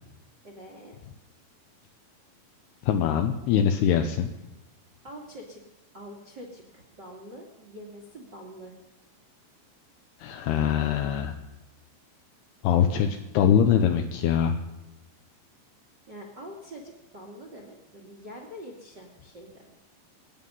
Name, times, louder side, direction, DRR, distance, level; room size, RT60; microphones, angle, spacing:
voice 1, 0.4-0.9 5.0-5.6 5.9-8.7 16.1-19.7, equal, 45° right, 1 dB, 1.4 m, -44 dB
voice 2, 2.8-4.3 10.2-11.3 12.6-14.5, left 8 dB, 80° left, 5 dB, 2.4 m, -23 dB
24.5 x 9.7 x 5.5 m, 1.0 s
omnidirectional pair, 5.5 m